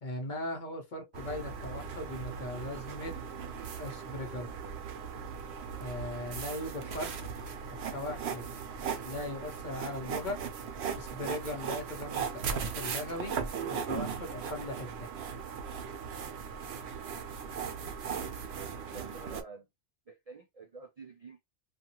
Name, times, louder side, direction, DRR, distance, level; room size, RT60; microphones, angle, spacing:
voice 1, 0.0-3.1 3.8-4.5 5.8-7.1 7.9-8.5 9.0-10.4 11.0-13.3 13.9-15.1, left 1 dB, 45° left, 0.9 m, -39 dB
sound 1, 1.1-19.4, right 6 dB, 70° right, 0.9 m, -38 dB
voice 2, 18.3-19.7 20.1-21.4, right 4 dB, 50° right, 0.4 m, -49 dB
2.5 x 2.3 x 2.9 m
omnidirectional pair, 1.2 m